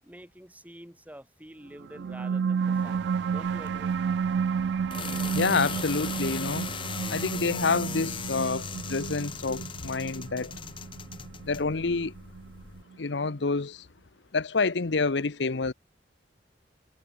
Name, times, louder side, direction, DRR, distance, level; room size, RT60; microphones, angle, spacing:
voice 1, 0.0-3.9, equal, 10° right, 3.7 m, -48 dB
sound 1, 1.8-12.8, right 6 dB, 65° right, 0.3 m, -31 dB
sound 2, 2.7-12.8, left 5 dB, 30° left, 0.7 m, -39 dB
voice 2, 5.3-6.7 7.1-10.5 11.4-12.1 13.0-13.9 14.3-15.7, left 4 dB, 75° left, 0.9 m, -28 dB
head